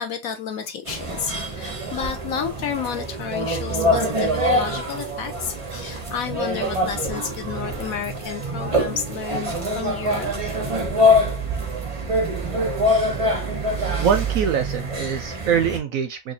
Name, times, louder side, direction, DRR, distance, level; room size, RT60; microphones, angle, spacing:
voice 1, 0.0-10.5, left 7 dB, 65° left, 1.0 m, -31 dB
sound 1, 0.8-15.8, left 1 dB, 40° right, 0.4 m, -24 dB
voice 2, 13.7-16.3, right 7 dB, 65° right, 0.8 m, -24 dB
4.7 x 2.6 x 2.7 m
omnidirectional pair, 1.8 m